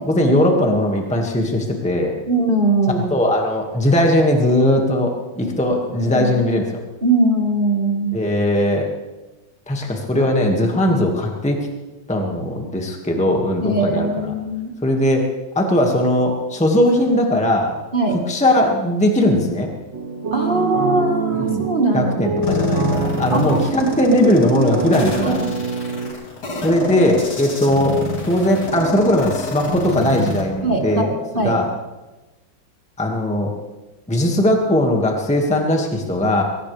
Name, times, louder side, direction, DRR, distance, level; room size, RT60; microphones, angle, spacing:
voice 1, 0.0-2.1 3.1-6.6 8.1-8.9 9.7-11.6 12.1-14.3 14.8-15.3 15.6-17.7 18.3-19.7 21.3-21.7 21.9-25.5 26.5-28.0 28.2-31.0 31.4-31.7 33.0-33.5 34.1-36.4, left 1 dB, 5° left, 1 dB, 1.8 m, -19 dB
voice 2, 2.3-3.1 6.0-6.3 7.0-8.2 13.6-14.7 17.9-18.2 20.3-22.3 23.3-23.9 24.9-25.4 30.6-31.6, right 2 dB, 25° right, 1 dB, 1.8 m, -21 dB
sound 1, 19.9-26.1, right 4 dB, 70° right, 2.5 m, -25 dB
sound 2, 22.4-30.4, left 2 dB, 55° left, 3.0 m, -27 dB
23.0 x 17.5 x 3.4 m, 1.1 s
omnidirectional pair, 2.1 m